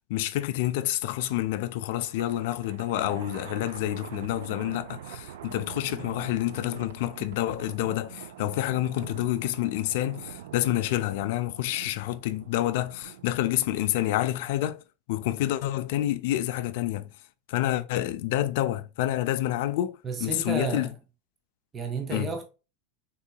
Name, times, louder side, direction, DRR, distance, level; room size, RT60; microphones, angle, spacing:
voice 1, 0.0-14.8 15.1-17.1 17.5-20.9 22.1-22.3, left 14 dB, 50° left, 0.4 m, -28 dB
Thunder, 2.0-13.8, right 10 dB, 75° right, 0.3 m, -44 dB
voice 2, 20.0-20.9 21.7-22.4, right 4 dB, 15° right, 0.5 m, -32 dB
3.6 x 2.7 x 2.2 m
supercardioid pair, 175°, 0 cm